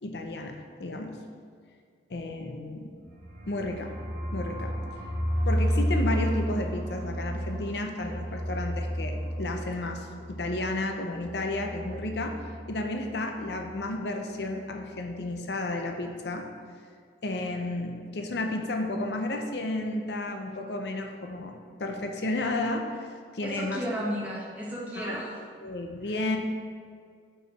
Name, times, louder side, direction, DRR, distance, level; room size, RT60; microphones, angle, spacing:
voice 1, 0.0-1.2 2.1-2.9 3.4-3.9 4.3-4.7 5.5-12.3 12.7-16.5 17.2-21.5 21.8-23.8 25.0-25.2 25.6-26.4, left 2 dB, 70° left, 3 dB, 0.6 m, -32 dB
sound 1, 3.0-12.7 13.0-13.1 13.4-13.8, equal, 70° right, 1.3 m, -32 dB
voice 2, 23.4-25.4 26.0-26.1, equal, 10° right, -5 dB, 1.2 m, -33 dB
5.4 x 4.8 x 6.0 m, 2.1 s
head